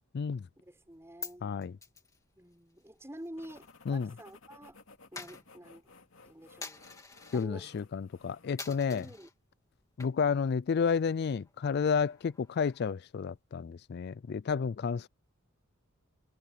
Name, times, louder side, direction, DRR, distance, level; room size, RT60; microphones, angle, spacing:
voice 1, 0.6-1.5 2.4-4.8 5.1-5.9 6.2-6.8 7.3-7.7 8.9-9.3, right 1 dB, 10° right, 6.2 m, -48 dB
Coin (dropping), 0.8-4.3 4.6-7.5 7.9-8.2 8.6-9.3 9.8-10.4 10.7-10.8 11.2-13.1, left 4 dB, 15° left, 2.5 m, -48 dB
voice 2, 1.4-1.8 3.9-4.1 7.3-9.1 10.0-15.1, left 6 dB, 50° left, 0.3 m, -31 dB
sound 1, 3.4-9.2, left 3 dB, 65° left, 3.1 m, -58 dB
head